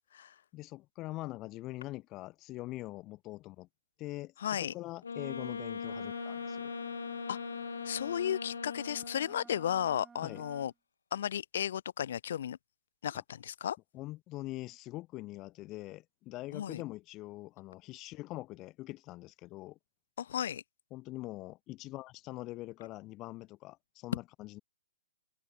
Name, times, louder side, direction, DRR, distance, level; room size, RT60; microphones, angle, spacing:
voice 1, 0.5-3.7 4.0-6.7 10.2-10.4 13.1-13.2 13.9-19.8 20.9-24.6, left 18 dB, 25° left, 0.7 m, -43 dB
voice 2, 4.4-4.7 7.3-7.4 7.9-10.7 11.1-12.6 13.0-13.8 16.5-16.8 20.2-20.6, left 9 dB, 60° left, 0.5 m, -34 dB
Wind instrument woodwind instrument, 5.0-9.4, left 5 dB, 80° left, 0.8 m, -40 dB
Wind instrument woodwind instrument 2, 5.8-10.7, right 5 dB, 10° right, 7.9 m, -54 dB
open air
hypercardioid pair, 140°, 0 cm